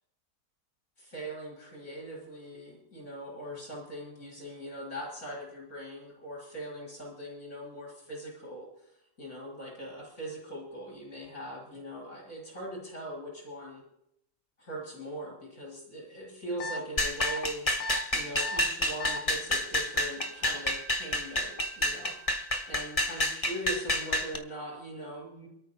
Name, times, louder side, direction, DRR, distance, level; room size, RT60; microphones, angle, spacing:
voice 1, 1.0-8.9 9.2-13.8 14.6-17.7 18.1-21.5 21.8-25.5, right 1 dB, 55° left, -3 dB, 6.1 m, -41 dB
sound 1, 16.6-16.8 17.2-17.4 17.8-18.0 18.4-18.6 19.0-19.2, left 2 dB, 90° left, 1.7 m, -34 dB
sound 2, 17.0-24.4, left 1 dB, 25° left, 1.1 m, -29 dB
Wind instrument woodwind instrument, 19.5-23.2, right 8 dB, 75° right, 3.1 m, -51 dB
28.5 x 13.5 x 2.3 m, 0.76 s
omnidirectional pair, 1.7 m